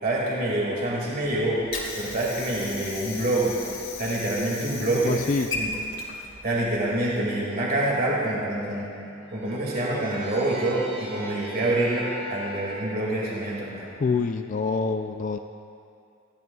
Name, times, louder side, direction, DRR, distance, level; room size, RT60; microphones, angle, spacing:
voice 1, 0.0-1.6 2.0-3.6 4.0-5.2 5.5-5.7 6.4-8.9 9.3-13.9, right 1 dB, 45° right, -5 dB, 2.3 m, -26 dB
Water / Sink (filling or washing), 1.2-7.2, left 3 dB, 75° left, 2.1 m, -36 dB
voice 2, 4.9-5.5 14.0-15.4, left 4 dB, 40° left, 6 dB, 0.4 m, -26 dB
sound 1, 8.4-12.8, equal, 85° right, 3.6 m, -40 dB
20.0 x 15.0 x 2.4 m, 2.5 s
head